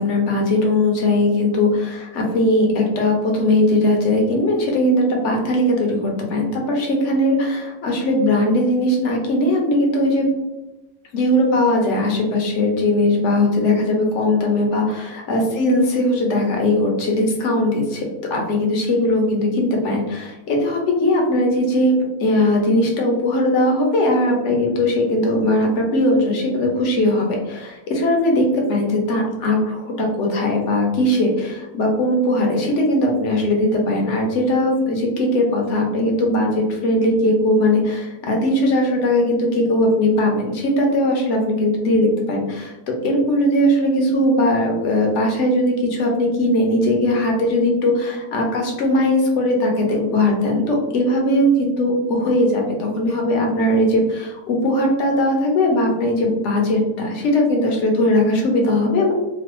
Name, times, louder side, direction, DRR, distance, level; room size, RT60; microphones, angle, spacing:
voice 1, 0.0-10.3 11.1-18.0 18.3-42.7 43.0-59.1, left 1 dB, 60° left, 0 dB, 1.0 m, -19 dB
3.0 x 2.2 x 3.0 m, 1.0 s
omnidirectional pair, 1.5 m